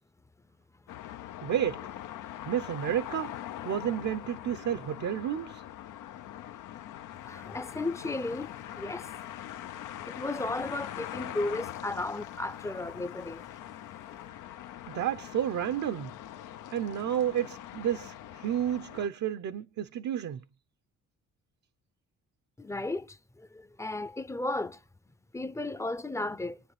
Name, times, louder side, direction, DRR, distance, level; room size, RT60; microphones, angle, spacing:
sound 1, 0.9-19.1, left 12 dB, 85° left, 0.7 m, -42 dB
voice 1, 1.4-1.8 2.5-3.3 3.6-5.6 14.9-16.1 16.7-20.4, right 10 dB, 65° right, 0.8 m, -31 dB
voice 2, 7.2-9.1 10.1-13.4 22.6-24.8 25.3-26.6, left 2 dB, 10° left, 0.6 m, -34 dB
27.5 x 9.4 x 3.3 m
cardioid pair, 90°, 30 cm